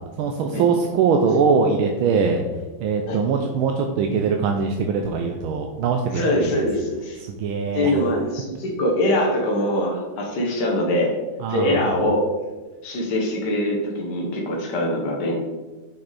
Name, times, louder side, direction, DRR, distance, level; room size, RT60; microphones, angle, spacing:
voice 1, 0.2-2.4 2.8-6.7 7.3-7.9 11.4-11.8, right 5 dB, 85° right, 4 dB, 1.5 m, -22 dB
voice 2, 6.1-7.2 7.7-11.1 11.5-12.3 12.8-15.4, left 1 dB, 55° left, 0 dB, 2.0 m, -23 dB
7.1 x 6.2 x 4.1 m, 1.3 s
omnidirectional pair, 2.2 m